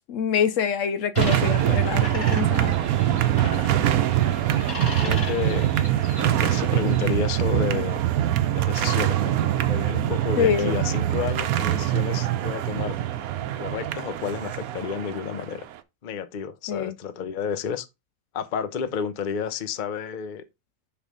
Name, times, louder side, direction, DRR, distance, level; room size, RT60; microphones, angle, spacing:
voice 1, 0.1-2.8 10.4-10.8 16.7-16.9, left 7 dB, 70° left, 0.9 m, -25 dB
sound 1, 1.1-7.2, left 2 dB, 20° left, 3.3 m, -37 dB
sound 2, 1.2-15.5, right 12 dB, 85° right, 1.1 m, -23 dB
voice 2, 4.8-5.7 6.2-8.0 8.5-13.0 13.3-15.6 16.0-17.9 18.3-20.4, left 7 dB, 50° left, 0.6 m, -31 dB
6.8 x 3.2 x 5.1 m
omnidirectional pair, 1.5 m